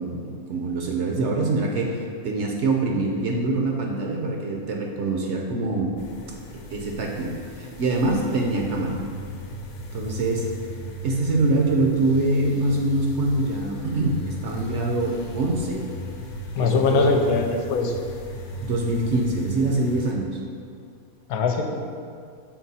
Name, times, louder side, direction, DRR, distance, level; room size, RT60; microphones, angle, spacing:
voice 1, 0.0-5.9 6.7-9.0 9.9-10.5 11.0-15.9 16.6-17.2 18.6-20.4, right 2 dB, 60° right, 0 dB, 0.8 m, -24 dB
sound 1, 6.0-20.1, right 1 dB, 60° left, 1.0 m, -37 dB
voice 2, 16.5-18.0 21.3-21.8, left 4 dB, 80° left, 4 dB, 1.1 m, -22 dB
6.0 x 4.4 x 4.1 m, 2.3 s
omnidirectional pair, 1.6 m